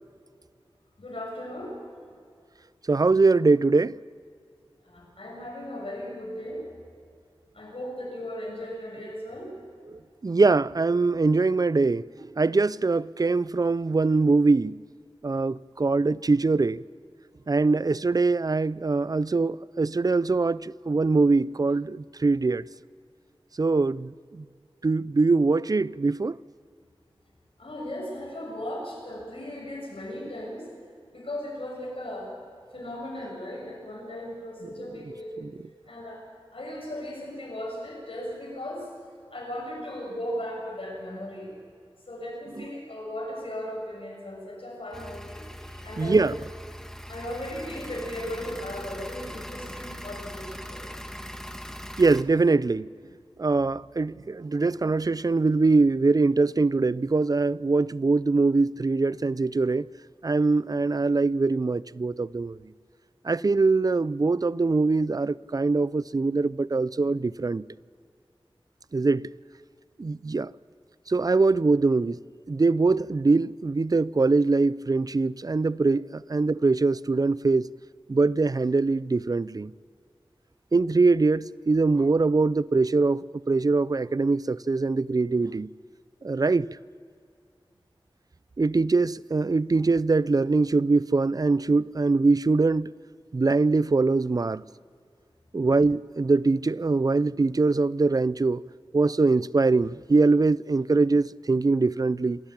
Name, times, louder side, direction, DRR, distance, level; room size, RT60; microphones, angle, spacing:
voice 1, 1.0-1.8 4.8-6.6 7.5-9.6 27.6-30.7 31.1-32.3 32.7-35.4 35.9-36.2 36.5-38.9 39.3-41.5 42.1-45.5 45.8-46.3 47.1-51.0, left 1 dB, 75° left, 6.8 m, -36 dB
voice 2, 2.9-3.9 9.9-12.0 12.4-14.8 15.2-16.8 17.5-22.6 23.6-24.4 24.8-26.4 42.6-42.7 46.0-46.4 52.0-52.9 53.4-59.9 60.2-62.6 63.2-67.7 68.9-69.3 70.0-70.5 71.1-72.2 72.5-77.7 78.1-79.7 80.7-85.7 86.2-86.7 88.6-92.9 93.3-94.6 95.5-98.6 98.9-102.4, right 3 dB, 40° right, 0.4 m, -23 dB
sound 1, 44.9-52.2, equal, 5° left, 1.5 m, -40 dB
27.5 x 12.0 x 8.6 m
wide cardioid pair, 50°, 10 cm